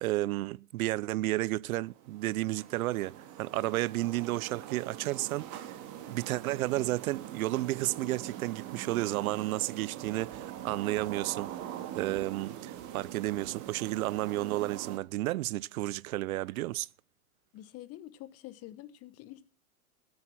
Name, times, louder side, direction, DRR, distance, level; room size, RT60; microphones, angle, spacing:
voice 1, 0.0-5.8 6.1-11.5 11.9-16.9, right 17 dB, 65° right, 0.5 m, -32 dB
sound 1, 1.8-15.0, right 11 dB, 40° right, 2.2 m, -43 dB
voice 2, 17.5-19.4, left 14 dB, 30° left, 1.0 m, -47 dB
14.5 x 8.6 x 5.8 m
hypercardioid pair, 125°, 45 cm